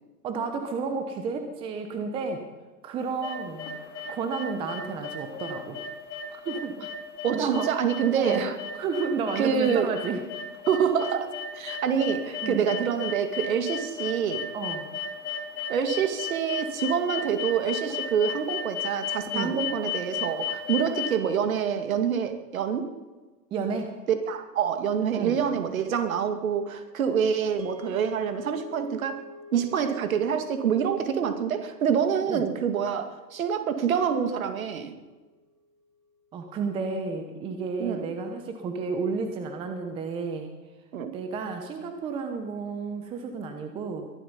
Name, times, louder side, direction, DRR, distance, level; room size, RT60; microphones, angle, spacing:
voice 1, 0.2-2.4 2.8-3.7 4.1-5.8 6.3-6.9 7.3-8.4 8.7-10.2 12.4-12.6 14.5-14.9 19.3-19.6 23.5-24.0 25.1-25.4 32.3-32.4 36.3-40.5 41.1-44.1, right 4 dB, 10° right, 6 dB, 0.9 m, -31 dB
sound 1, 3.0-21.1, left 6 dB, 45° left, 3.3 m, -34 dB
voice 2, 7.2-8.6 9.4-9.9 10.7-14.5 15.7-22.9 24.3-29.2 29.5-35.0 37.8-38.1 40.9-41.1, right 7 dB, 55° right, 8 dB, 2.3 m, -26 dB
sound 2, 27.6-35.9, left 2 dB, 90° right, 3.0 m, -47 dB
22.0 x 12.0 x 5.5 m, 1.2 s
hypercardioid pair, 135°, 49 cm